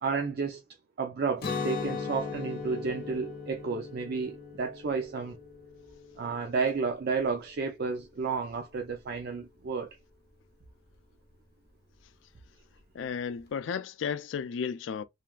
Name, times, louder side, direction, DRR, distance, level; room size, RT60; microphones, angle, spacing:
voice 1, 0.0-0.6 1.0-5.4 6.2-9.9, right 5 dB, 55° right, 0.5 m, -32 dB
Guitar, 1.4-7.2, left 5 dB, 55° left, 0.8 m, -38 dB
voice 2, 12.9-15.0, left 6 dB, 80° left, 0.4 m, -33 dB
3.2 x 2.3 x 2.4 m
head